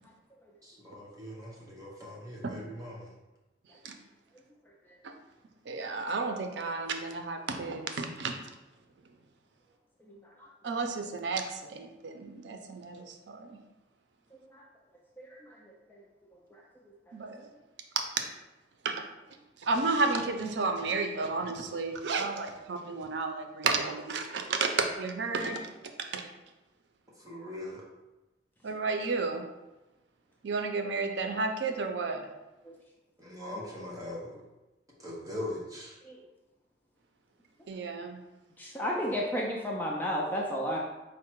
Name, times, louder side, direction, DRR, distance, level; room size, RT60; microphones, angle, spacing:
voice 1, 0.6-3.1 27.2-27.8 33.2-34.4 35.0-35.9, left 1 dB, 20° right, -5 dB, 0.8 m, -40 dB
voice 2, 5.7-8.3 10.6-13.6 17.1-17.4 18.0-18.2 18.8-19.0 19.6-25.6 26.1-26.2 28.6-29.4 30.4-32.2 37.7-38.2, right 4 dB, 80° right, 5 dB, 0.5 m, -32 dB
voice 3, 38.6-40.8, equal, 10° left, -2 dB, 0.4 m, -31 dB
4.6 x 2.1 x 4.5 m, 1.0 s
head